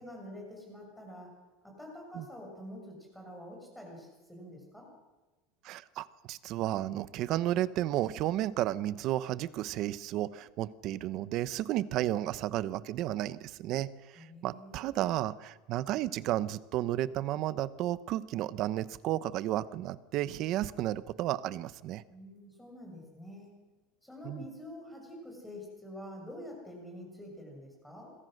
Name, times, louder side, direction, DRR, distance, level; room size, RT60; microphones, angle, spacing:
voice 1, 0.0-1.3 1.6-4.9 14.1-15.2 22.1-23.5 24.0-28.1, left 1 dB, ahead, 0 dB, 6.6 m, -47 dB
voice 2, 5.6-22.0 24.2-24.5, right 13 dB, 40° right, 16 dB, 0.9 m, -33 dB
27.0 x 22.5 x 6.6 m, 1.2 s
supercardioid pair, 175°, 0 cm